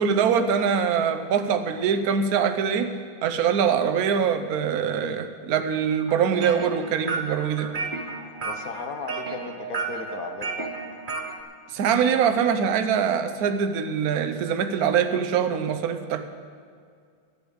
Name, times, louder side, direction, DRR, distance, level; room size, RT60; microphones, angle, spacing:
voice 1, 0.0-2.9 3.2-7.7 11.7-16.2, right 7 dB, 60° right, 9 dB, 1.1 m, -23 dB
sound 1, 6.1-11.4, right 4 dB, 40° right, 0.7 m, -33 dB
voice 2, 8.4-10.7, left 5 dB, 55° left, 7 dB, 1.1 m, -36 dB
11.5 x 9.6 x 8.1 m, 2.2 s
omnidirectional pair, 2.3 m